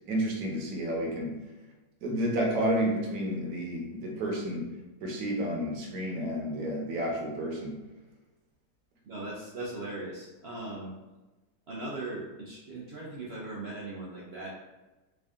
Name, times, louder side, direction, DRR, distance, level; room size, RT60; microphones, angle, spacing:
voice 1, 0.1-1.3 2.0-4.7 5.0-7.7, equal, 60° right, -1 dB, 1.2 m, -30 dB
voice 2, 9.0-10.9 11.7-14.5, right 2 dB, 75° right, -5 dB, 0.5 m, -39 dB
3.7 x 2.6 x 3.4 m, 1.1 s
omnidirectional pair, 1.9 m